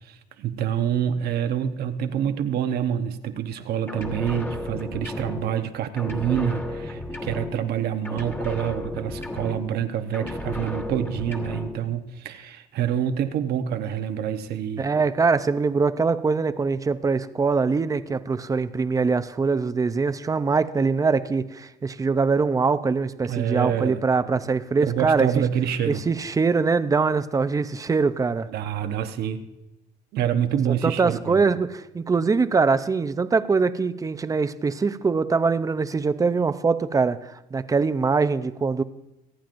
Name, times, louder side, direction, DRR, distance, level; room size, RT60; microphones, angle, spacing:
voice 1, 0.0-14.9 23.3-24.0 24.8-26.0 28.5-29.4 30.1-31.4, right 9 dB, 70° right, 8 dB, 0.9 m, -27 dB
sound 1, 3.9-5.7 6.0-7.8 8.0-9.9 10.1-11.8, left 1 dB, 15° left, 1.5 m, -33 dB
voice 2, 14.8-25.4 25.9-28.5 30.8-38.8, right 4 dB, 20° right, 12 dB, 0.6 m, -23 dB
27.0 x 9.0 x 2.6 m, 0.93 s
cardioid pair, 110°, 17 cm